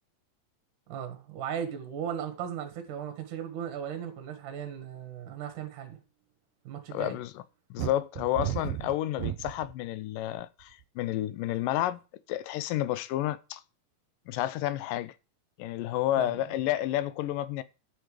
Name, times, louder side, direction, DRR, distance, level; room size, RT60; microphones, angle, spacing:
voice 1, 0.9-6.0 6.7-7.2 16.2-16.4, right 8 dB, 65° right, 2.9 m, -37 dB
voice 2, 6.9-7.4 7.7-12.0 12.3-13.6 14.3-15.1 15.6-17.6, left 13 dB, 80° left, 2.2 m, -30 dB
sound 1, 7.8-9.7 10.4-10.8, right 14 dB, 85° right, 2.4 m, -33 dB
10.5 x 8.0 x 4.9 m
omnidirectional pair, 4.0 m